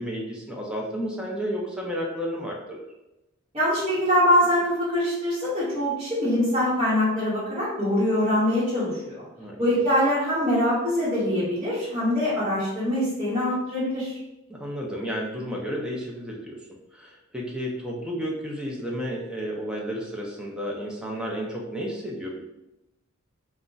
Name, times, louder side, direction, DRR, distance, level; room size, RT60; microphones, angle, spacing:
voice 1, 0.0-2.9 9.4-9.8 14.5-22.5, equal, 5° right, -2 dB, 0.4 m, -32 dB
voice 2, 3.5-9.2 9.6-14.2, equal, 25° right, -12 dB, 0.9 m, -23 dB
2.4 x 2.1 x 3.8 m, 0.93 s
head